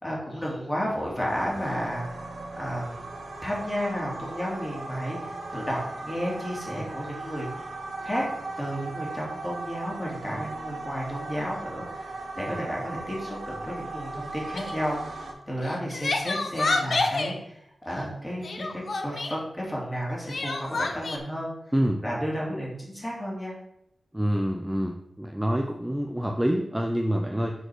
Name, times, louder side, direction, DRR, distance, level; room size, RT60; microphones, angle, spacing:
voice 1, 0.0-2.3 2.6-3.0 3.4-7.7 8.0-8.3 8.6-21.5 22.0-23.6, equal, 15° left, -4 dB, 2.8 m, -32 dB
sound 1, 0.9-15.3, right 3 dB, 85° right, 1.3 m, -38 dB
Crying sobbing, 14.5-14.8 15.6-17.4 18.4-19.4 20.3-21.2, left 3 dB, 60° left, 0.9 m, -28 dB
voice 2, 24.1-27.5, equal, 10° right, 3 dB, 0.6 m, -26 dB
6.7 x 4.7 x 6.2 m, 0.77 s
wide cardioid pair, 95°, 0 cm